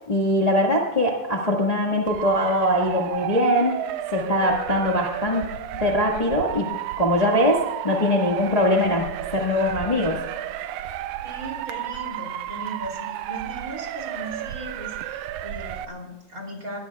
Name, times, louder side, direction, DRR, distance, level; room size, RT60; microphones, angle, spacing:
voice 1, 0.1-3.8 4.1-5.4 5.7-10.2, left 1 dB, 35° left, -1 dB, 0.6 m, -22 dB
Motor vehicle (road) / Siren, 2.1-15.9, right 12 dB, 75° right, 1.8 m, -32 dB
voice 2, 11.2-16.8, right 1 dB, 25° right, 1 dB, 3.2 m, -37 dB
22.5 x 19.5 x 2.4 m, 1.1 s
omnidirectional pair, 3.9 m